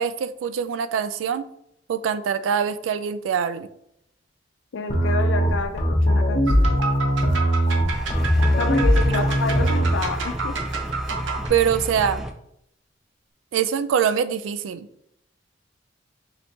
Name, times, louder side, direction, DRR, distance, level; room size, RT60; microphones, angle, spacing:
voice 1, 0.0-1.4 1.9-3.7 9.1-9.3 11.5-12.2 13.5-14.9, right 7 dB, 90° right, 12 dB, 0.3 m, -24 dB
voice 2, 4.7-6.8 8.6-10.6, left 4 dB, 85° left, 6 dB, 0.5 m, -29 dB
sound 1, 4.9-9.9, equal, 40° left, 0.7 m, -20 dB
sound 2, 6.5-11.5, right 4 dB, 70° right, 0.7 m, -30 dB
sound 3, 7.9-12.3, equal, ahead, 0.3 m, -32 dB
3.9 x 3.5 x 2.8 m, 0.75 s
head